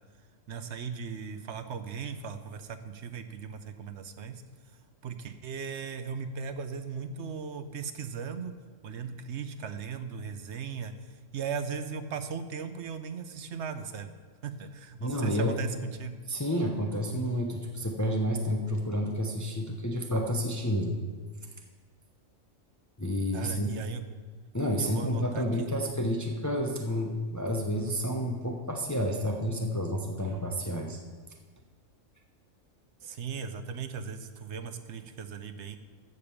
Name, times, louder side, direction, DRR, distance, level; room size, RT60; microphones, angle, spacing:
voice 1, 0.5-4.4 5.0-8.5 8.8-10.9 11.3-14.1 14.4-16.2 23.3-24.0 24.8-25.4 33.0-35.8, right 6 dB, 65° right, 9 dB, 1.0 m, -37 dB
voice 2, 15.0-15.5 16.3-21.0 23.0-23.7 24.5-31.0, equal, 15° left, 2 dB, 0.7 m, -30 dB
13.5 x 5.2 x 7.1 m, 1.5 s
omnidirectional pair, 1.3 m